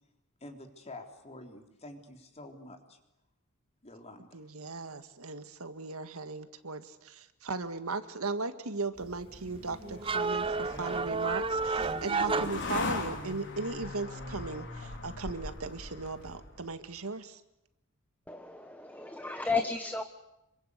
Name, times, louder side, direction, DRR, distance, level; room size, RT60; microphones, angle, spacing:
voice 1, 0.4-3.0 3.8-4.4, left 2 dB, 30° left, 4 dB, 3.8 m, -48 dB
voice 2, 4.3-17.4, right 3 dB, 80° right, 10 dB, 1.9 m, -37 dB
sound 1, 9.0-13.3, right 4 dB, 25° right, 0.9 m, -32 dB
sound 2, 9.3-16.7, left 2 dB, 60° left, 4.3 m, -40 dB
voice 3, 18.3-20.0, left 4 dB, 10° left, 8 dB, 1.2 m, -33 dB
27.0 x 23.5 x 8.3 m, 0.87 s
head